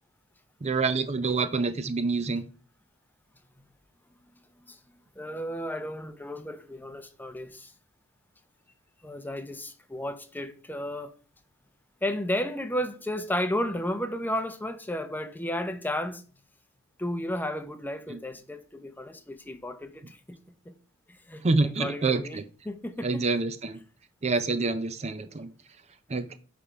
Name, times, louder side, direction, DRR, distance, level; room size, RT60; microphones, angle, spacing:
voice 1, 0.6-2.4 18.1-18.2 21.4-22.4 23.0-23.8 24.2-25.5 26.1-26.3, right 3 dB, 30° right, 0.5 m, -27 dB
voice 2, 5.2-7.7 9.0-11.1 12.0-16.2 17.0-20.4 20.7-20.8 21.1-23.2, left 1 dB, 10° left, 0.7 m, -33 dB
8.9 x 3.5 x 5.1 m
head